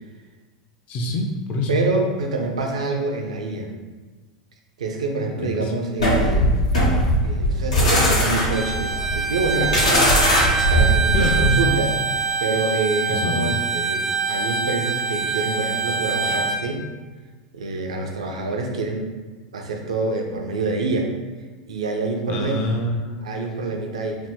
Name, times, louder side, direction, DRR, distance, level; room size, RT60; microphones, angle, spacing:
voice 1, 0.9-1.8 5.5-5.7 11.1-11.6 13.1-13.6 22.3-23.3, left 2 dB, 45° left, 1 dB, 0.5 m, -25 dB
voice 2, 1.7-3.7 4.8-6.5 7.2-10.1 10.7-11.9 12.4-16.9 17.5-19.1 19.5-21.1 21.7-22.7 23.2-24.2, right 3 dB, 90° right, 3 dB, 0.4 m, -26 dB
sound 1, 6.0-11.7, equal, 90° left, 0.9 m, -19 dB
Bowed string instrument, 8.5-16.6, right 5 dB, 10° right, 0.3 m, -25 dB
2.9 x 2.1 x 3.4 m, 1.3 s
hypercardioid pair, 100°, 3 cm